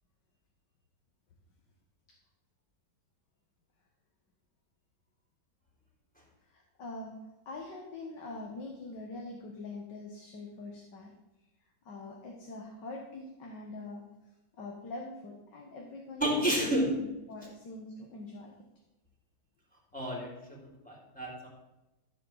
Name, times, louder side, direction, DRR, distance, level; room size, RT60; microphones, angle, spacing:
voice 1, 6.4-7.1 7.5-11.1 11.9-14.0 14.6-16.9 17.3-18.5, left 2 dB, 80° left, 0 dB, 2.1 m, -43 dB
voice 2, 16.2-17.0 19.9-20.6 20.8-21.5, right 1 dB, 5° left, -3 dB, 3.6 m, -30 dB
14.0 x 5.3 x 7.2 m, 0.99 s
omnidirectional pair, 1.9 m